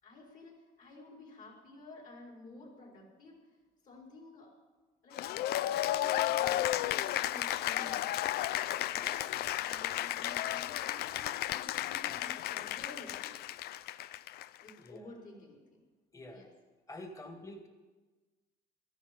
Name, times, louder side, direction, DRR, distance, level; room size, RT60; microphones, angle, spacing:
voice 1, 0.0-3.4 3.8-4.5 5.0-5.2 5.6-8.1 8.9-9.2 9.7-13.4 14.6-15.8 16.3-16.5, left 2 dB, 50° left, 0 dB, 5.1 m, -52 dB
Cheering / Applause, 5.1-14.7, left 13 dB, 70° left, 0.4 m, -33 dB
voice 2, 16.9-17.7, left 1 dB, 20° left, 5 dB, 1.9 m, -47 dB
17.0 x 13.0 x 5.2 m, 1.3 s
cardioid pair, 110°, 17 cm